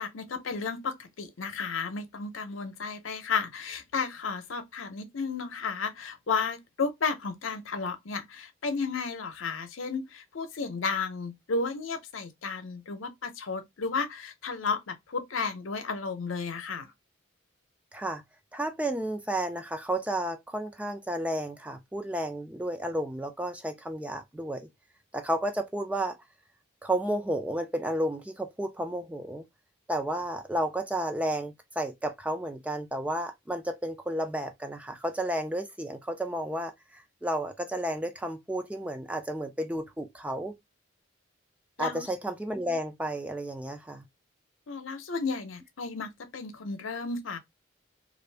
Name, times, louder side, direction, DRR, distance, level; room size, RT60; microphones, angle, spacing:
voice 1, 0.0-16.9 41.8-42.1 44.7-47.4, left 4 dB, 85° left, 0.7 m, -33 dB
voice 2, 17.9-18.2 18.5-24.7 25.1-26.2 26.8-29.4 29.9-40.5 41.8-44.0, right 1 dB, 5° right, 0.3 m, -32 dB
2.5 x 2.5 x 3.2 m
head